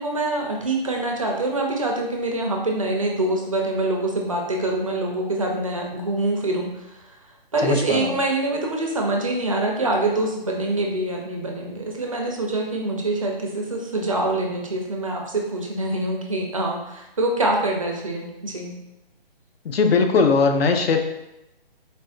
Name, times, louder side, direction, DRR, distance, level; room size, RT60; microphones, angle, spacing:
voice 1, 0.0-7.0 7.5-18.7, right 2 dB, 35° right, 0 dB, 0.4 m, -25 dB
voice 2, 7.6-8.1 19.6-21.1, left 4 dB, 85° left, 5 dB, 0.6 m, -19 dB
4.1 x 2.2 x 2.4 m, 0.91 s
hypercardioid pair, 165°, 30 cm